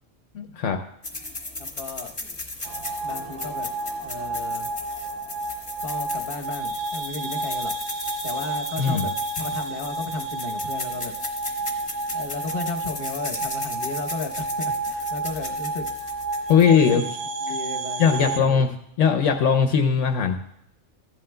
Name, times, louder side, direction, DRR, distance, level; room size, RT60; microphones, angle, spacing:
voice 1, 0.3-0.8 8.8-9.0 16.5-17.0 18.0-18.7 19.0-20.4, left 6 dB, 75° left, 5 dB, 1.0 m, -19 dB
sound 1, 1.0-16.8, left 2 dB, 25° left, 1.5 m, -37 dB
voice 2, 1.6-2.1 3.0-3.7 4.0-4.7 5.8-7.7 8.2-11.1 12.1-15.9 16.7-17.0 17.5-18.7, left 3 dB, 50° left, 3 dB, 1.1 m, -34 dB
sound 2, 2.6-18.4, right 2 dB, 60° right, 0.9 m, -31 dB
sound 3, 3.1-6.6, equal, 90° right, 1.9 m, -50 dB
15.5 x 11.5 x 2.2 m, 0.79 s
omnidirectional pair, 1.3 m